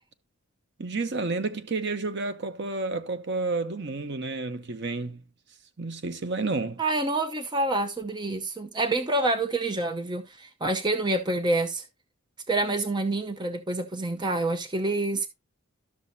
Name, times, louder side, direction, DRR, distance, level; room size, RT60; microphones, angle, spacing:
voice 1, 0.8-5.2 5.8-6.8, right 3 dB, 55° right, 0.9 m, -30 dB
voice 2, 6.8-11.8 12.5-15.3, right 2 dB, 20° right, 0.7 m, -27 dB
12.5 x 6.3 x 2.7 m
head